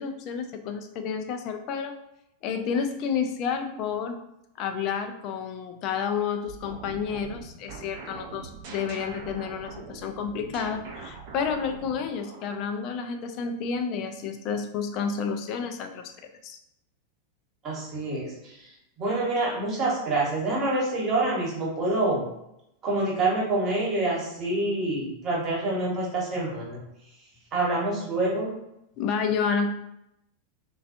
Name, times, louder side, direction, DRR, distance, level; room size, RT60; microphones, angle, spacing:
voice 1, 0.0-2.0 2.4-4.2 4.6-16.1 16.4-16.6 29.0-29.7, left 6 dB, 40° left, 6 dB, 0.3 m, -30 dB
sound 1, 6.5-12.7, right 5 dB, 50° right, 0.5 m, -42 dB
voice 2, 17.6-18.7 19.0-22.3 22.8-26.8 27.5-28.5, right 2 dB, 30° right, -4 dB, 1.0 m, -27 dB
2.4 x 2.3 x 2.4 m, 0.83 s
figure-of-eight pair, 90°, 0 cm